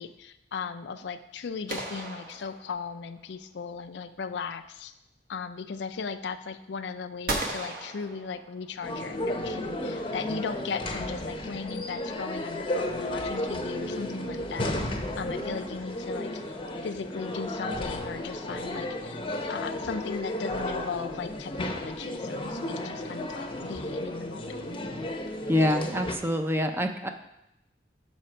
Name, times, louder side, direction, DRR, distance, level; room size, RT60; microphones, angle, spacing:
voice 1, 0.0-4.9 5.3-14.8 15.1-16.5 16.8-19.2 19.5-24.6, left 5 dB, 70° left, 8 dB, 0.4 m, -37 dB
sound 1, 1.7-3.1 7.3-8.9, right 2 dB, 55° right, 1.0 m, -35 dB
sound 2, 8.8-26.2, left 1 dB, 30° left, 0.7 m, -33 dB
voice 2, 25.5-27.1, left 1 dB, 15° right, 6 dB, 0.5 m, -26 dB
6.3 x 5.7 x 4.4 m, 0.86 s
head